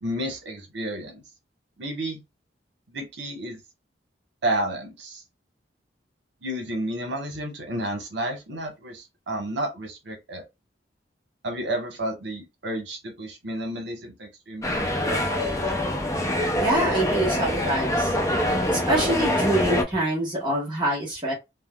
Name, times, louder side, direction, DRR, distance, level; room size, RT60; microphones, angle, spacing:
voice 1, 0.0-1.2 1.8-2.2 2.9-3.6 4.4-5.2 6.4-10.4 11.4-15.5, right 1 dB, 75° right, 1.1 m, -31 dB
sound 1, 14.6-19.8, left 1 dB, 15° left, 0.5 m, -25 dB
voice 2, 16.6-18.1 18.7-21.3, right 1 dB, 25° right, 1.1 m, -25 dB
3.4 x 2.2 x 2.2 m
head